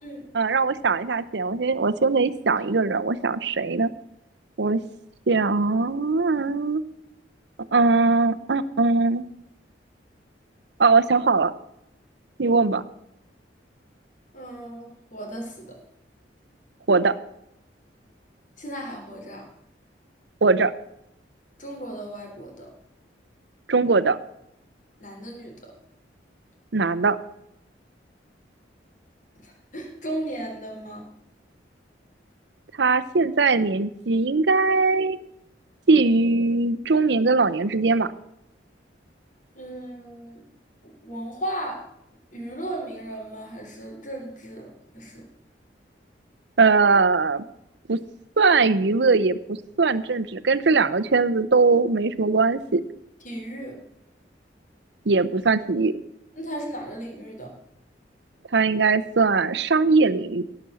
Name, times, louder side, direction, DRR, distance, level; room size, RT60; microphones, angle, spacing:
voice 1, 0.3-3.9 4.6-4.8 5.3-6.8 7.7-9.2 10.8-11.5 12.4-12.8 16.9-17.1 20.4-20.7 23.7-24.2 26.7-27.2 32.8-35.2 35.9-38.1 46.6-47.4 47.9-48.0 48.4-52.8 55.1-55.9 58.5-60.4, right 4 dB, 70° right, 12 dB, 0.7 m, -20 dB
voice 2, 14.3-15.8 18.6-19.4 21.6-22.7 25.0-25.7 29.4-31.0 39.5-40.5 40.8-41.8 42.3-45.2 53.2-53.8 56.4-57.6, right 1 dB, 45° left, 1 dB, 3.7 m, -35 dB
17.5 x 6.1 x 6.9 m, 0.81 s
head